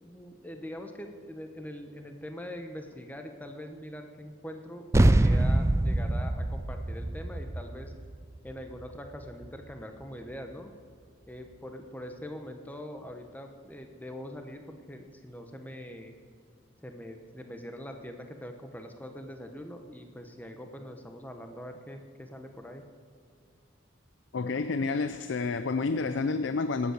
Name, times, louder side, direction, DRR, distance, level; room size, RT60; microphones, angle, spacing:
voice 1, 0.0-7.9 8.4-10.7 11.3-16.1 16.8-22.8, equal, 10° left, 5 dB, 1.0 m, -43 dB
sound 1, 4.9-9.7, right 1 dB, 15° right, 0.3 m, -25 dB
voice 2, 24.3-26.9, left 4 dB, 65° left, 11 dB, 0.5 m, -29 dB
19.5 x 8.2 x 6.5 m, 2.1 s
head